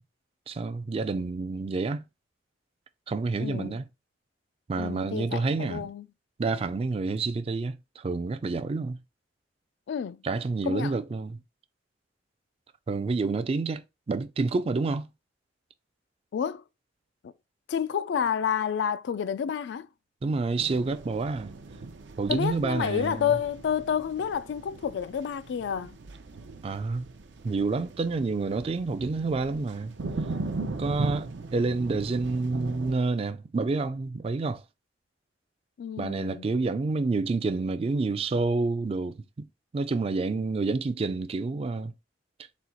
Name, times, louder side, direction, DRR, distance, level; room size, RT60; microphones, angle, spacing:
voice 1, 0.5-2.0 3.1-3.9 4.7-5.9 6.4-9.0 10.2-11.4 12.9-15.1 20.2-21.5 22.2-23.3 26.6-27.1 27.4-29.9 30.8-34.6 36.0-39.5 39.7-41.9, right 3 dB, 30° right, 0.3 m, -28 dB
voice 2, 3.4-3.8 4.8-6.1 9.9-10.2 10.7-10.9 16.3-16.6 17.2-17.3 17.7-19.9 22.3-26.0 35.8-36.5, left 8 dB, 70° left, 0.3 m, -29 dB
sound 1, 20.6-32.9, right 3 dB, 85° right, 0.6 m, -39 dB
4.1 x 2.3 x 4.3 m
head